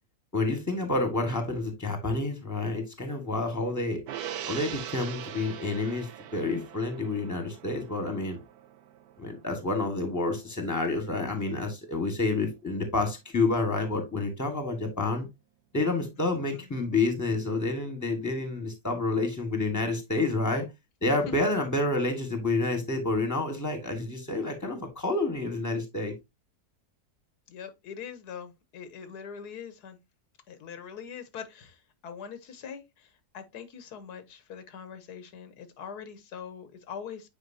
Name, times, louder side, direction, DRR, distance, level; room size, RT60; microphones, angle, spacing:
voice 1, 0.3-4.0 4.5-8.4 9.2-15.3 15.7-20.7 21.0-26.1, left 2 dB, 10° left, 1.5 m, -29 dB
Gong, 4.1-10.7 11.0-11.2, right 10 dB, 80° right, 1.2 m, -42 dB
voice 2, 27.5-30.0 30.5-37.3, left 7 dB, 85° left, 1.5 m, -42 dB
8.1 x 4.6 x 2.7 m
omnidirectional pair, 1.7 m